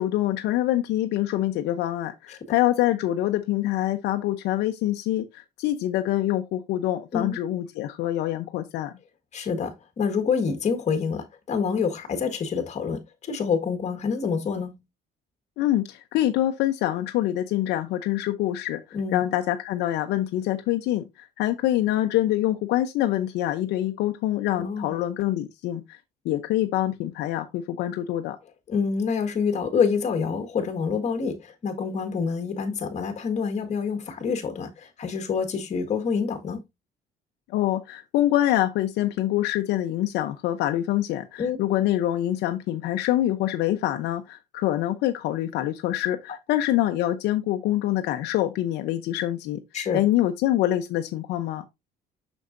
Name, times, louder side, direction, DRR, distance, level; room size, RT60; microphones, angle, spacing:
voice 1, 0.0-8.9 15.6-18.8 19.1-26.0 26.2-28.4 37.5-49.6 49.9-51.6, left 13 dB, 85° left, 0.8 m, -25 dB
voice 2, 9.3-14.8 18.9-19.2 24.6-25.0 28.7-36.6 41.4-41.6 49.7-50.0, left 6 dB, 45° left, 1.8 m, -27 dB
6.7 x 6.3 x 2.6 m
cardioid pair, 110°, 17 cm